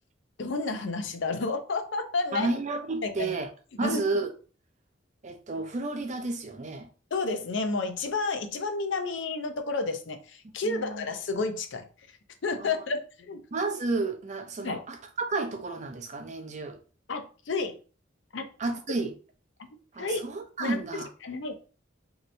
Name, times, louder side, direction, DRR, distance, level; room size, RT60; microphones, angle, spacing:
voice 1, 0.4-2.5 3.0-3.4 3.8-4.0 7.1-11.8 12.4-13.0 13.3-13.4 14.6-14.8 17.1-17.8 18.3-18.4 20.0-20.2 20.6-20.8 21.2-21.5, left 3 dB, 75° left, 0.6 m, -30 dB
voice 2, 2.3-3.5 3.8-4.3 5.2-6.9 10.6-11.0 12.5-12.8 13.5-16.8 18.6-19.1 19.9-21.1, right 3 dB, 40° right, 0.5 m, -31 dB
3.2 x 2.8 x 2.6 m
head